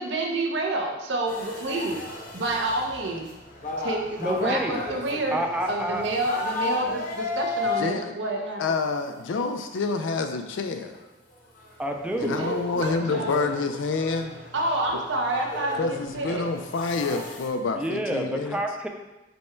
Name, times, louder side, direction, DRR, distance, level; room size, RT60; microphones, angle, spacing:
voice 1, 0.0-2.0 2.3-3.3 3.8-5.4 5.7-8.6 12.2-13.4 14.5-16.5, right 2 dB, 65° right, 2 dB, 0.7 m, -28 dB
sound 1, 1.3-8.5 9.2-9.4 9.7-9.8 10.5-10.6 11.0-11.1 11.3-17.5, left 2 dB, 45° left, 0.7 m, -35 dB
voice 2, 4.2-4.8 5.3-6.1 11.8-12.4 17.8-18.9, right 1 dB, 5° right, 2 dB, 0.3 m, -28 dB
voice 3, 7.8-8.1 8.6-11.0 12.2-14.4 15.7-18.6, left 4 dB, 85° left, 7 dB, 0.4 m, -28 dB
5.3 x 2.2 x 4.3 m, 1.0 s
head